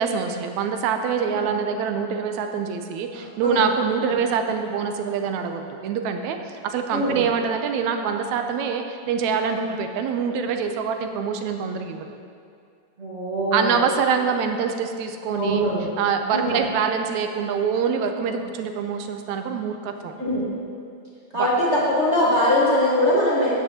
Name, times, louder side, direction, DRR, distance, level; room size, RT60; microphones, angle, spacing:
voice 1, 0.0-6.4 6.6-12.1 13.5-15.7 16.0-20.1 21.4-21.5, right 6 dB, 80° right, 6 dB, 1.9 m, -25 dB
voice 2, 3.1-3.6 4.0-4.2 6.9-7.2 13.0-13.8 15.3-15.9 16.3-16.6 20.2-20.4 21.3-23.5, left 1 dB, 30° right, -8 dB, 1.6 m, -22 dB
14.5 x 9.4 x 2.9 m, 2.3 s
omnidirectional pair, 3.5 m